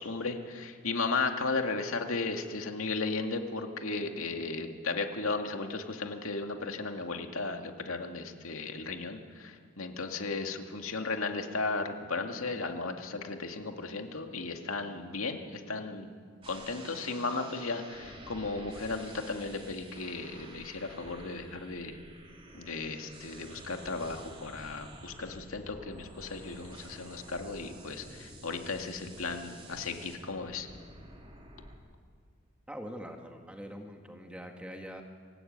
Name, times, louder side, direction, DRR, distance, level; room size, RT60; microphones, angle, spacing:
voice 1, 0.0-16.1 16.5-22.0 22.5-30.7, left 3 dB, 85° left, 4 dB, 2.2 m, -35 dB
sound 1, 16.4-31.7, right 1 dB, 25° right, 3.6 m, -50 dB
voice 2, 32.7-35.0, equal, 5° right, 3 dB, 2.0 m, -43 dB
26.5 x 16.5 x 8.9 m, 2.2 s
head